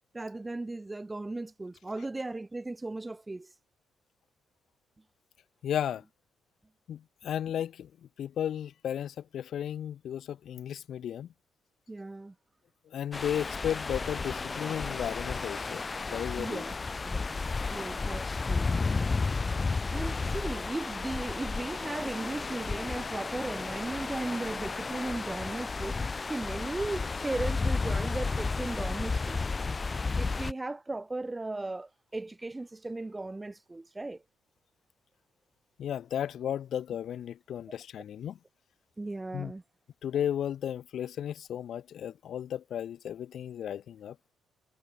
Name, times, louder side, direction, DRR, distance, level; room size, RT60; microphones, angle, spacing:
voice 1, 0.1-3.5 11.9-12.3 16.4-16.7 17.0-17.4 17.7-18.7 19.9-29.4 30.2-34.2 39.0-39.6, right 2 dB, 15° right, 2.2 m, -37 dB
voice 2, 5.6-6.0 6.9-7.9 8.2-11.3 12.9-16.7 35.8-38.4 39.3-39.5 40.0-44.2, left 10 dB, 65° left, 4.3 m, -34 dB
sound 1, 13.1-30.5, left 4 dB, 30° left, 0.7 m, -32 dB
cardioid pair, 90°, 0 cm